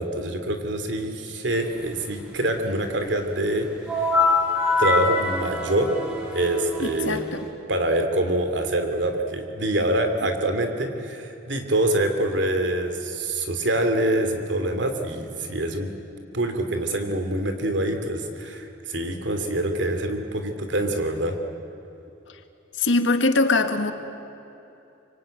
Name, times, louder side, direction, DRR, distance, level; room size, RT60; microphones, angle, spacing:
voice 1, 0.0-3.7 3.9-4.1 4.8-5.9 6.3-7.2 7.7-15.9 16.3-21.4, right 1 dB, 70° right, 6 dB, 2.8 m, -25 dB
sound 1, 3.9-7.5, left 3 dB, 5° right, 4.0 m, -24 dB
voice 2, 6.8-7.5 22.8-23.9, left 3 dB, 75° left, 7 dB, 1.8 m, -22 dB
25.0 x 23.5 x 9.1 m, 2.9 s
head